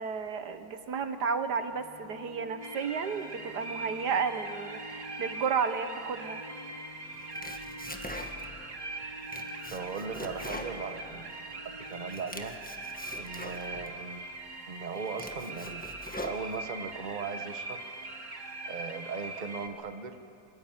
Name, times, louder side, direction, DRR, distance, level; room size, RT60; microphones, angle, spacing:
voice 1, 0.0-6.4, right 6 dB, 80° right, 9 dB, 1.9 m, -32 dB
Organ, 1.4-12.4, left 1 dB, 75° left, 6.6 m, -50 dB
sound 1, 2.6-19.7, right 2 dB, 50° right, 2.2 m, -42 dB
Domestic sounds home sounds, 7.1-8.7 9.0-11.6 11.9-13.9 14.5-14.6 15.0-16.9, left 1 dB, 5° left, 1.5 m, -43 dB
voice 2, 9.7-11.3 11.6-12.6 13.2-14.3 14.7-15.8 16.2-17.8 18.7-20.2, right 5 dB, 30° right, 8 dB, 1.2 m, -38 dB
24.0 x 24.0 x 9.2 m, 2.6 s
omnidirectional pair, 1.7 m